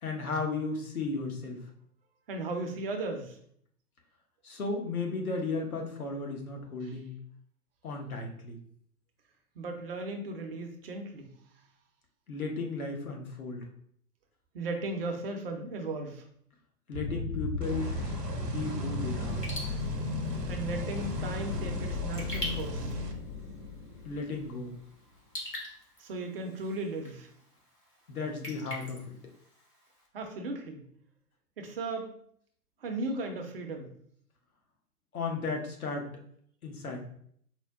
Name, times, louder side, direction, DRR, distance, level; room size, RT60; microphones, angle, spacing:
voice 1, 0.0-1.7 4.4-7.1 7.8-8.6 12.3-13.6 16.9-17.9 18.4-19.4 24.0-24.7 28.1-29.1 35.1-36.1 36.6-37.0, left 3 dB, 65° left, 2 dB, 1.0 m, -35 dB
voice 2, 2.3-3.4 6.8-7.0 9.6-11.3 14.5-16.2 20.5-23.0 26.0-27.3 30.1-30.8 31.6-32.1 32.8-33.9, right 2 dB, 40° right, 4 dB, 0.6 m, -36 dB
sound 1, 16.9-24.7, left 2 dB, 30° left, 0.4 m, -36 dB
sound 2, 17.6-23.1, left 1 dB, 85° right, 0.7 m, -38 dB
Raindrop / Drip, 19.3-30.1, equal, 90° left, 1.4 m, -45 dB
4.4 x 2.1 x 3.4 m, 0.65 s
figure-of-eight pair, 110°, 46 cm